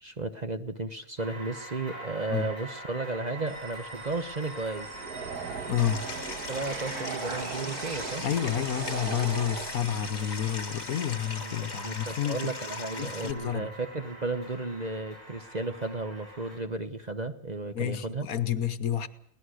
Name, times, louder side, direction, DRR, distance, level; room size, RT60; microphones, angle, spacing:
voice 1, 0.0-4.9 6.5-8.3 11.4-18.3, right 3 dB, 35° right, 1.0 m, -34 dB
sound 1, 1.2-16.6, right 2 dB, 55° right, 8.6 m, -44 dB
sound 2, 3.5-11.4, right 5 dB, 90° right, 2.1 m, -39 dB
voice 2, 5.7-6.1 8.2-12.5 13.0-13.7 17.7-19.1, left 10 dB, 70° left, 1.5 m, -30 dB
Stream, 5.8-13.3, left 5 dB, 45° left, 1.7 m, -40 dB
23.0 x 18.5 x 6.4 m
omnidirectional pair, 1.6 m